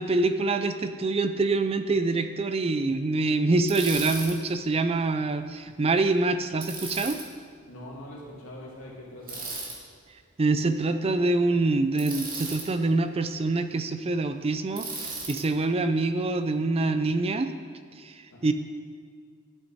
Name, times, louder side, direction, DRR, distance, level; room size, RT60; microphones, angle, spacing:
voice 1, 0.0-7.2 10.4-17.5 18.0-18.5, right 3 dB, 30° right, 10 dB, 0.4 m, -25 dB
Bicycle, 3.7-4.3 6.6-7.2 9.3-9.8 12.0-12.7 14.8-15.4, right 3 dB, 45° right, 1.8 m, -35 dB
voice 2, 7.7-9.5 18.3-18.5, left 1 dB, 75° left, -4 dB, 2.6 m, -43 dB
11.5 x 8.2 x 4.2 m, 2.1 s
head